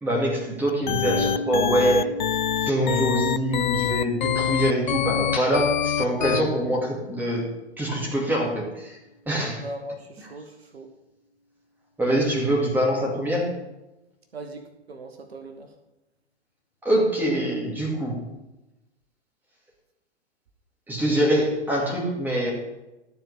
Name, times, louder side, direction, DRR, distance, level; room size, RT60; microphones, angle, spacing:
voice 1, 0.0-2.2 2.6-7.4 7.8-9.0 9.3-9.7 10.2-10.3 12.0-13.5 16.8-18.2 20.9-22.5, right 1 dB, 5° right, -3 dB, 2.2 m, -24 dB
sound 1, 0.7-6.4, left 9 dB, 45° left, 0.4 m, -25 dB
sound 2, 1.1-8.9, equal, 65° left, 1.6 m, -37 dB
voice 2, 9.5-10.9 14.3-14.6 14.9-15.7, right 1 dB, 60° right, 6 dB, 1.3 m, -39 dB
13.0 x 4.7 x 7.2 m, 1.0 s
figure-of-eight pair, 115°, 34 cm